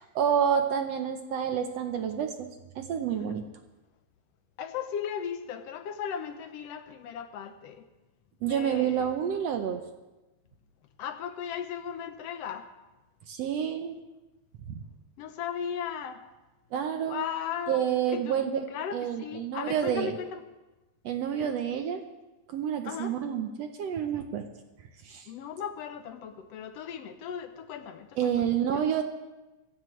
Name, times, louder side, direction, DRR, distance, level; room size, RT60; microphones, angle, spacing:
voice 1, 0.2-2.5 2.8-3.4 8.4-9.8 13.3-14.0 14.8-14.9 16.7-17.2 17.7-18.6 18.9-20.1 21.1-22.0 22.5-24.4 25.0-25.3 28.2-29.0, right 8 dB, 70° right, 6 dB, 1.8 m, -28 dB
voice 2, 4.6-7.9 8.5-9.1 11.0-12.7 15.2-16.2 17.1-20.4 22.8-23.2 25.3-28.3 28.7-29.0, left 8 dB, 70° left, 9 dB, 1.7 m, -37 dB
25.5 x 15.5 x 3.3 m, 1.1 s
omnidirectional pair, 3.4 m